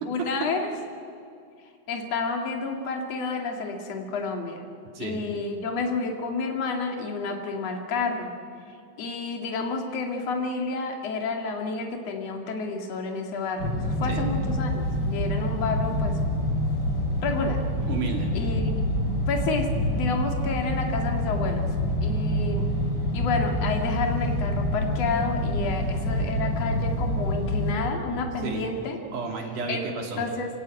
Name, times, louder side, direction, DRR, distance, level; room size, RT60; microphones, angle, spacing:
voice 1, 0.1-0.7 1.9-4.6 5.0-8.3 9.0-16.2 17.2-17.6 18.3-18.8 19.3-22.7 23.1-29.0 29.7-29.8 30.2-30.5, left 4 dB, 55° left, 3 dB, 3.1 m, -30 dB
sound 1, 13.6-27.7, left 1 dB, 40° left, 4.3 m, -27 dB
voice 2, 17.9-18.3 28.4-28.7 29.1-30.3, right 4 dB, 80° right, 1 dB, 4.3 m, -32 dB
26.0 x 17.5 x 9.2 m, 2.4 s
omnidirectional pair, 3.5 m